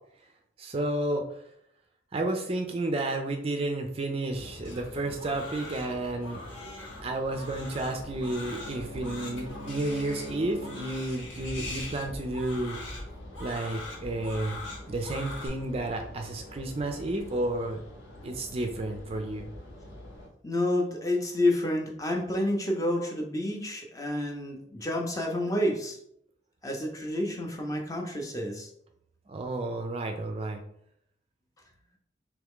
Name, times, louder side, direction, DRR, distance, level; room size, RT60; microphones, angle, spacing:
voice 1, 0.6-1.4 2.1-6.4 7.0-12.8 13.4-14.6 14.9-17.8 18.2-19.5 29.3-30.6, right 2 dB, 30° right, 4 dB, 0.4 m, -31 dB
sound 1, 4.3-20.3, left 1 dB, 65° left, 0.8 m, -45 dB
Crying sobbing, 4.6-15.5, left 2 dB, 80° left, 1.4 m, -43 dB
Bowed string instrument, 7.7-11.3, left 1 dB, 40° left, 0.9 m, -44 dB
voice 2, 20.4-26.0 26.6-28.7, left 1 dB, 15° left, 1 dB, 0.6 m, -29 dB
3.5 x 3.0 x 3.6 m, 0.71 s
head